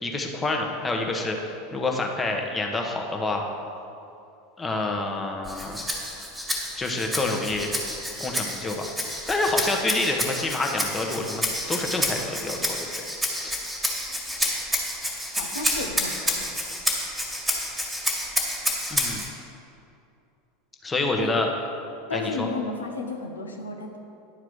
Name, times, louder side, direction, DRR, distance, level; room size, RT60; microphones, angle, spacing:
voice 1, 0.0-3.4 4.6-5.8 6.7-7.7 8.2-8.9 9.3-13.0 13.4-13.5 18.9-19.3 20.8-21.5 22.1-22.5, left 2 dB, 15° left, 2 dB, 1.2 m, -27 dB
Rattle (instrument), 5.4-19.3, equal, 5° right, 1.9 m, -29 dB
voice 2, 15.4-16.4 21.2-21.3 22.1-24.0, left 3 dB, 75° left, 3 dB, 0.9 m, -32 dB
10.5 x 4.7 x 6.2 m, 2.7 s
figure-of-eight pair, 80°, 0 cm